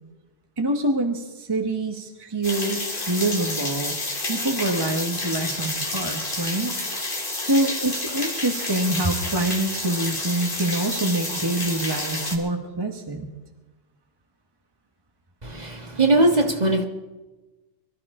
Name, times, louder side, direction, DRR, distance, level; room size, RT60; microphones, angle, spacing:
voice 1, 0.6-6.7 7.4-13.3, right 2 dB, 25° right, 4 dB, 1.2 m, -26 dB
sound 1, 2.4-12.3, left 2 dB, 60° left, 2.5 m, -29 dB
voice 2, 15.4-16.9, right 2 dB, 45° right, 3 dB, 1.6 m, -20 dB
23.5 x 13.5 x 3.7 m, 1.2 s
omnidirectional pair, 1.0 m